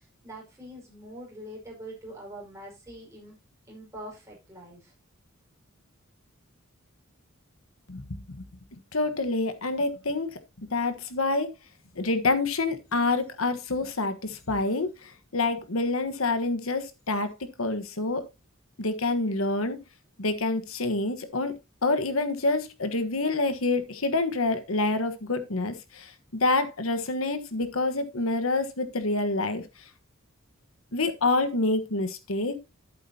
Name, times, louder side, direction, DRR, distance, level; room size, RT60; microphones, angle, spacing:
voice 1, 0.0-3.4 3.7-4.9, right 1 dB, 15° right, 5.3 m, -44 dB
voice 2, 7.9-8.5 8.9-11.5 11.9-18.3 18.8-19.8 20.2-21.5 21.8-29.6 30.9-32.6, left 2 dB, 85° left, 1.4 m, -27 dB
11.5 x 8.5 x 2.8 m
head